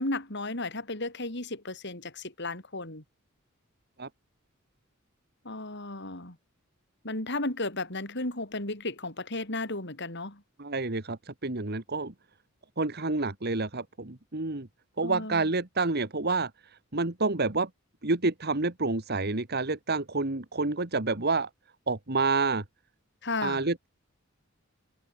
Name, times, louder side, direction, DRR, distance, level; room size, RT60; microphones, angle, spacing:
voice 1, 0.0-3.0 5.4-6.4 7.0-10.4 15.0-15.5 23.2-23.6, left 2 dB, 60° left, 7.4 m, -34 dB
voice 2, 10.6-12.1 12.8-14.7 15.0-16.5 16.9-17.7 18.0-21.5 21.9-22.6 23.4-23.9, right 3 dB, 50° right, 1.9 m, -28 dB
head